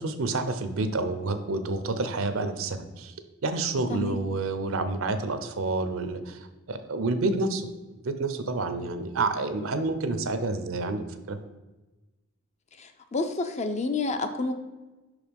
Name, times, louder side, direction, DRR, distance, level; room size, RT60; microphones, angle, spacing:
voice 1, 0.0-3.1 3.4-7.7 8.0-11.4, right 3 dB, 70° right, 10 dB, 0.6 m, -29 dB
voice 2, 12.8-14.5, left 3 dB, 30° left, 8 dB, 0.5 m, -29 dB
5.6 x 4.9 x 5.2 m, 1.1 s
head